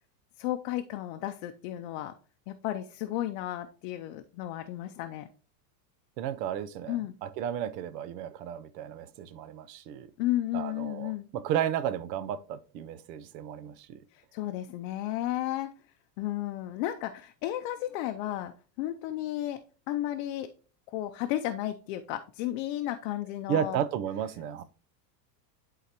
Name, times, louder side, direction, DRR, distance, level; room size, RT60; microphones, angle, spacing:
voice 1, 0.4-2.2 2.5-5.3 6.9-7.1 10.2-11.3 14.1-15.7 16.2-19.6 19.9-20.5 20.9-23.8, left 13 dB, 50° left, 0.5 m, -33 dB
voice 2, 6.2-10.1 10.5-14.0 23.5-24.6, right 10 dB, 75° right, 0.8 m, -33 dB
11.5 x 3.9 x 2.9 m
supercardioid pair, 145°, 49 cm